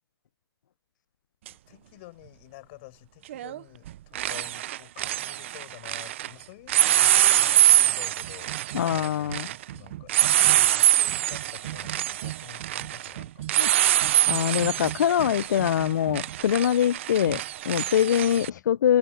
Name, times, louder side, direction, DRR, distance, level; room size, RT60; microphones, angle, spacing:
voice 1, 1.5-13.5 18.3-18.6, left 23 dB, 25° left, 6.6 m, -49 dB
sound 1, 1.5-1.6 3.3-3.6 3.9-6.3 6.7-18.5, right 13 dB, 30° right, 0.5 m, -24 dB
voice 2, 8.7-9.5 13.6-13.7 14.3-19.0, left 10 dB, 45° left, 0.4 m, -24 dB
hypercardioid pair, 165°, 14 cm